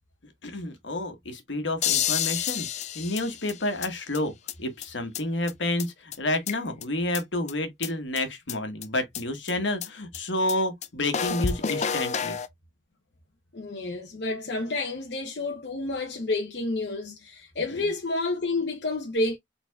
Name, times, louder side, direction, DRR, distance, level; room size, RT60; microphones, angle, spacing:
voice 1, 0.4-2.7 2.9-4.3 4.6-12.4 17.7-17.8, left 1 dB, 80° left, 1.3 m, -29 dB
sound 1, 1.8-3.9 4.1-4.2 4.5-4.6 4.8-4.9 5.1-5.2 5.5-5.6 5.8-5.9 6.1-6.8 7.1-7.2 7.5-7.6 7.8-7.9 8.2-8.3 8.5-8.6 8.8-8.9 9.1-9.2 9.5-9.6 9.8-9.9 10.1-10.2 10.5-10.6 10.8-10.9 11.1-12.5, left 8 dB, 40° left, 0.4 m, -29 dB
voice 2, 13.5-19.4, left 2 dB, 65° left, 0.8 m, -29 dB
4.5 x 3.9 x 2.3 m
head